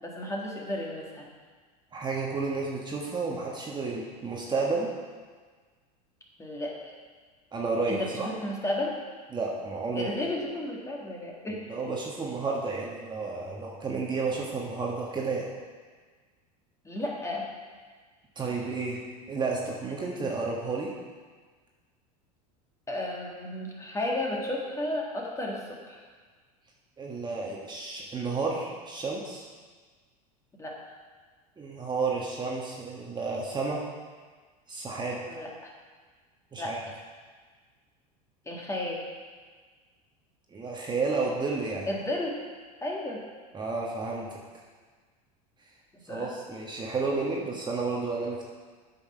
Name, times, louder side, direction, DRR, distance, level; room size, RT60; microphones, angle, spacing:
voice 1, 0.0-1.3 6.4-6.9 7.9-9.0 9.9-11.7 16.8-17.5 22.9-25.6 25.9-26.0 30.6-30.8 35.3-35.7 36.6-36.7 38.5-39.0 41.8-42.4 42.8-43.2 46.1-46.3, left 1 dB, 15° left, -2 dB, 2.0 m, -33 dB
voice 2, 1.9-4.9 7.5-8.3 9.3-10.1 11.7-15.5 18.3-20.9 27.0-29.4 31.6-33.9 34.7-35.2 36.5-36.8 40.5-41.9 43.5-44.4 46.0-48.4, right 4 dB, 25° right, -2 dB, 1.4 m, -31 dB
8.7 x 5.7 x 5.6 m, 1.5 s
hypercardioid pair, 95°, 19 cm